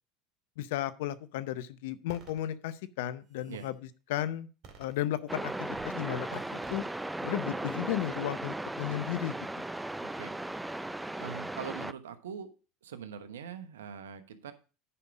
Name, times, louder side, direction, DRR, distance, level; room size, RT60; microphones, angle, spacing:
voice 1, 0.6-3.8 4.1-4.5 4.8-5.5 5.8-6.8 7.2-9.4, left 13 dB, 75° left, 15 dB, 0.7 m, -34 dB
sound 1, 2.1-2.4 3.1-3.7 4.6-5.4 5.7-5.9 6.3-6.9, right 4 dB, 55° right, 2.2 m, -52 dB
sound 2, 5.3-11.9, right 1 dB, 10° right, 0.5 m, -37 dB
voice 2, 11.2-12.5 12.8-14.5, right 7 dB, 85° right, 10 dB, 1.0 m, -42 dB
10.0 x 5.4 x 4.8 m, 0.34 s
hypercardioid pair, 85°, 0 cm